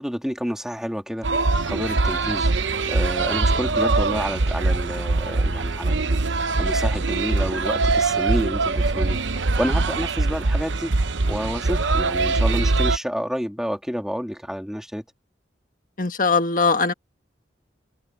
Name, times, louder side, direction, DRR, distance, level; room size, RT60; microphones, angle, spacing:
voice 1, 0.0-1.4 1.7-2.5 2.9-10.9 11.3-15.0, equal, 5° right, 2.9 m, -29 dB
sound 1, 1.2-13.0, right 3 dB, 80° right, 0.9 m, -22 dB
voice 2, 16.0-16.9, left 4 dB, 45° left, 1.6 m, -20 dB
head